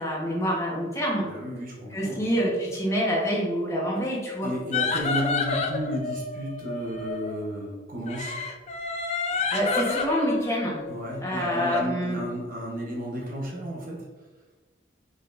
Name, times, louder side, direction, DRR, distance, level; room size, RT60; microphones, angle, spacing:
voice 1, 0.0-1.3 1.9-4.5 9.3-10.8 11.2-12.2, equal, 15° left, -4 dB, 1.1 m, -27 dB
voice 2, 1.2-2.3 4.4-8.4 10.9-14.1, equal, 50° right, -2 dB, 1.1 m, -33 dB
sound 1, 4.7-7.3 8.1-11.9, left 4 dB, 35° left, 0.4 m, -30 dB
5.2 x 3.9 x 2.6 m, 1.3 s
head